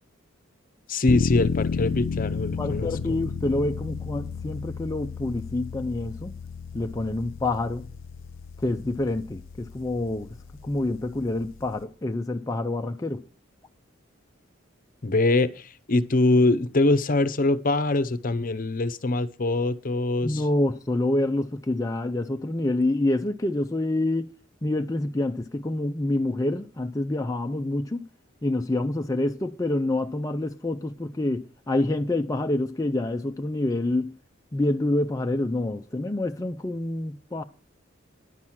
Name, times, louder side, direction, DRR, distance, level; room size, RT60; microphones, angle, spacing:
voice 1, 0.9-3.2 15.0-20.4, left 2 dB, 45° left, 0.8 m, -23 dB
sound 1, 1.1-11.8, left 5 dB, 90° left, 0.5 m, -32 dB
voice 2, 2.6-6.3 6.7-7.9 8.6-10.3 10.6-13.3 20.2-24.3 24.6-28.1 28.4-34.2 34.5-37.4, left 2 dB, 15° left, 0.5 m, -27 dB
11.0 x 6.2 x 7.3 m
head